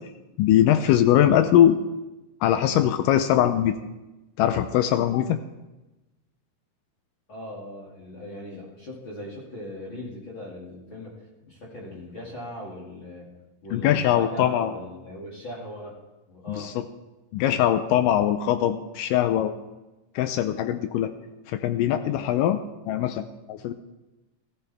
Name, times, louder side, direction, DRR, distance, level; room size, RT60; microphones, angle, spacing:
voice 1, 0.4-1.8 2.4-3.8 4.4-5.4 13.7-14.7 16.5-16.7 17.3-19.5 20.2-21.1 21.5-22.6 22.9-23.7, left 11 dB, 80° left, 9 dB, 2.2 m, -21 dB
voice 2, 7.3-11.2 11.5-13.3 13.6-16.0 16.3-16.7 21.9-22.2, left 1 dB, 40° left, -4 dB, 3.1 m, -39 dB
18.0 x 15.5 x 3.5 m, 1.1 s
omnidirectional pair, 3.8 m